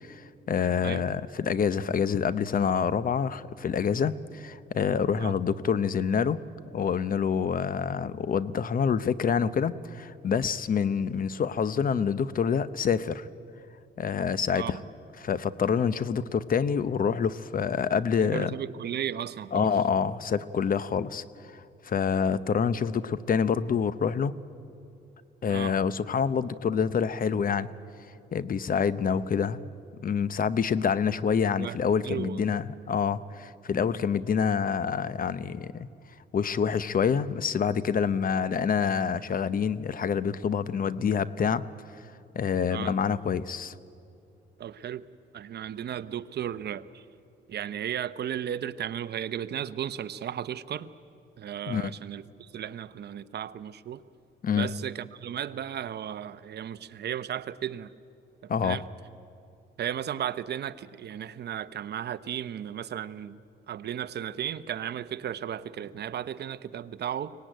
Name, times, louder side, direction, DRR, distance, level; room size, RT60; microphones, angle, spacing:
voice 1, 0.0-6.4 6.7-13.3 14.0-14.8 15.2-18.6 19.5-21.2 21.5-24.3 25.4-27.7 28.3-29.6 30.0-35.9 36.3-41.6 42.3-43.7 51.7-51.9 54.4-54.7 58.5-58.8, left 7 dB, 45° left, 16 dB, 0.8 m, -27 dB
voice 2, 18.2-19.7 25.5-25.7 31.6-31.8 32.0-32.5 42.7-42.9 44.6-45.0 45.3-47.0 47.5-50.9 51.4-54.0 54.5-57.9 58.4-58.8 59.8-63.4 63.7-67.3, right 9 dB, 55° right, 13 dB, 0.8 m, -35 dB
24.0 x 18.5 x 9.2 m, 2.6 s
cardioid pair, 90°, 20 cm